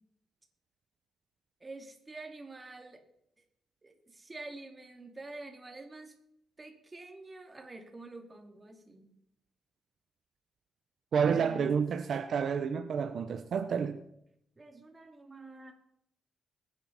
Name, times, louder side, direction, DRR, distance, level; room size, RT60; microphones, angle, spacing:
voice 1, 1.6-3.0 3.8-6.1 6.6-9.1 11.2-11.8 14.6-15.7, right 2 dB, 25° right, 2.7 m, -47 dB
voice 2, 11.1-14.0, right 6 dB, 65° right, 0.9 m, -29 dB
22.0 x 9.7 x 4.3 m
cardioid pair, 100°, 0 cm